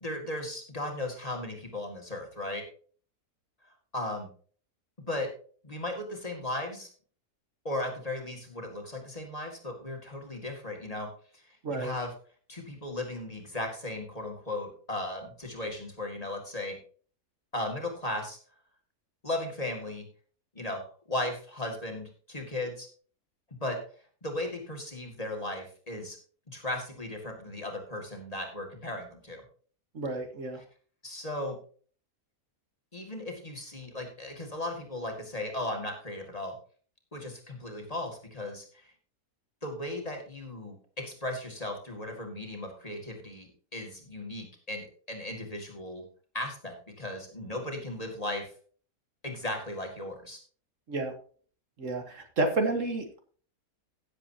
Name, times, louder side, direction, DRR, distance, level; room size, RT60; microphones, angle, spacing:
voice 1, 0.0-2.6 3.9-4.3 5.1-5.3 5.6-6.9 7.6-11.1 11.3-12.1 12.5-16.8 17.5-18.4 19.2-20.1 20.6-20.8 21.1-22.9 23.6-23.8 24.2-26.2 26.5-29.4 31.0-31.6 32.9-36.5 37.1-38.9 39.6-46.0 46.3-48.5 49.2-50.4, left 1 dB, 25° left, 2 dB, 2.3 m, -36 dB
voice 2, 11.6-11.9 29.9-30.6 50.9-51.1 51.8-53.2, right 2 dB, 60° right, 5 dB, 1.8 m, -30 dB
16.5 x 7.6 x 2.8 m, 0.42 s
omnidirectional pair, 1.5 m